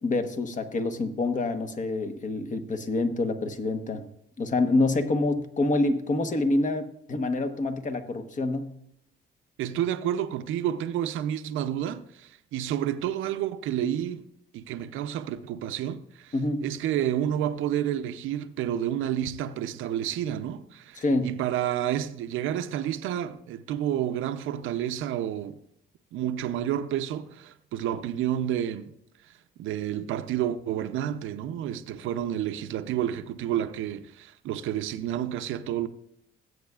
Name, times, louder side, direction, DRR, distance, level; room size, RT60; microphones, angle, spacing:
voice 1, 0.0-4.0 4.4-8.7 16.3-16.7 21.0-21.3, left 2 dB, 40° left, 1.1 m, -27 dB
voice 2, 9.6-14.2 14.5-16.3 16.6-25.6 26.1-28.9 29.6-35.9, right 11 dB, 85° right, 0.6 m, -30 dB
16.5 x 8.0 x 2.4 m
cardioid pair, 90°, 20 cm